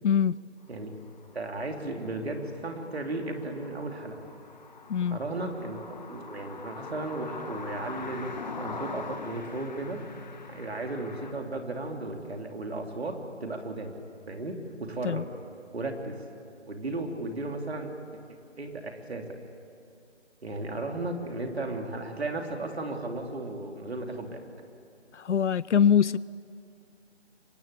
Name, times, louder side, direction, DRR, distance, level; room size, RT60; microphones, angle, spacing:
voice 1, 0.0-0.4 4.9-5.2 15.0-15.2 25.1-26.2, left 8 dB, 80° left, 21 dB, 0.5 m, -23 dB
sound 1, 0.7-11.3, left 4 dB, 40° left, 1.4 m, -43 dB
voice 2, 1.3-4.3 5.1-10.0 10.5-13.9 14.3-15.2 15.7-16.2 16.7-17.9 18.6-19.3 20.4-24.5, right 2 dB, 60° right, 3 dB, 3.3 m, -35 dB
25.0 x 21.0 x 8.4 m, 2.4 s
figure-of-eight pair, 170°, 35 cm